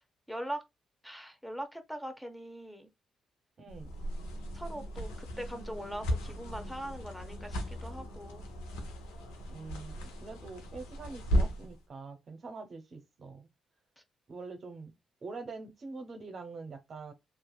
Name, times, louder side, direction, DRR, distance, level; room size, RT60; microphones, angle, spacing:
voice 1, 0.3-0.6 1.0-2.9 4.5-8.4, right 1 dB, 5° left, 0.8 m, -41 dB
voice 2, 3.6-3.9 9.5-13.5 14.3-14.9 15.2-17.1, right 4 dB, 55° right, 0.7 m, -44 dB
sound 1, 3.7-11.8, equal, 85° left, 0.7 m, -36 dB
2.8 x 2.4 x 2.3 m
hypercardioid pair, 45°, 0 cm